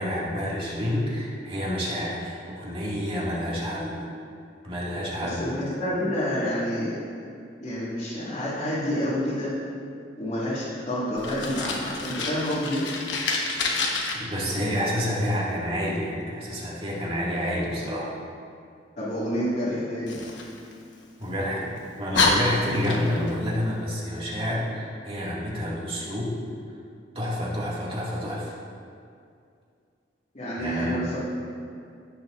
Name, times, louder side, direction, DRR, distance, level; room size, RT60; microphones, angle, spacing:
voice 1, 0.0-4.0 4.6-5.5 14.1-18.1 21.2-26.3 27.2-28.5 30.6-31.0, equal, 30° right, -6 dB, 2.1 m, -29 dB
voice 2, 5.2-7.0 7.6-9.5 10.2-12.8 19.0-20.2 30.3-31.2, equal, 45° left, -11 dB, 2.0 m, -28 dB
Fire, 11.2-14.1 20.1-21.3 21.8-21.9 22.1-23.3, left 3 dB, 75° left, 1.1 m, -27 dB
16.5 x 7.0 x 2.5 m, 2.4 s
head